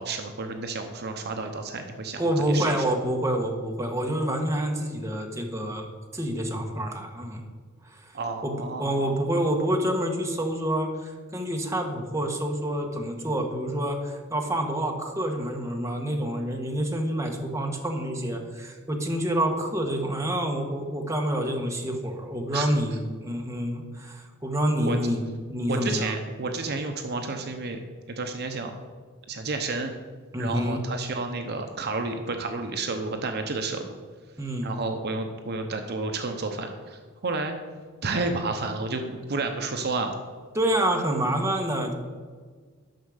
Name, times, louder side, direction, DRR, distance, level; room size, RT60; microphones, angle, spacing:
voice 1, 0.0-2.8 8.1-9.1 22.5-22.7 24.8-25.0 25.7-27.8 28.1-28.7 29.3-29.9 30.4-33.9 34.6-37.5 38.0-40.2, right 3 dB, 50° right, 5 dB, 0.8 m, -31 dB
voice 2, 2.2-5.9 6.1-7.4 7.9-8.1 8.4-25.2 25.5-26.1 30.3-30.8 34.4-34.7 40.5-41.9, right 1 dB, 15° right, 2 dB, 1.3 m, -27 dB
10.5 x 6.5 x 6.5 m, 1.5 s
head